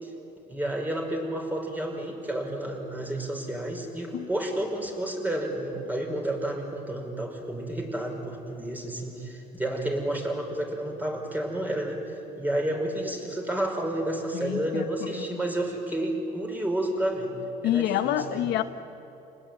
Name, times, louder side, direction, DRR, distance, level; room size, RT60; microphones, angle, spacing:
voice 1, 0.5-12.0 12.4-17.3 17.6-18.5, right 1 dB, 10° right, 1 dB, 5.2 m, -30 dB
voice 2, 14.3-15.4 17.6-18.6, left 12 dB, 80° left, 9 dB, 1.0 m, -28 dB
28.5 x 20.0 x 9.0 m, 3.0 s
cardioid pair, 110°, 17 cm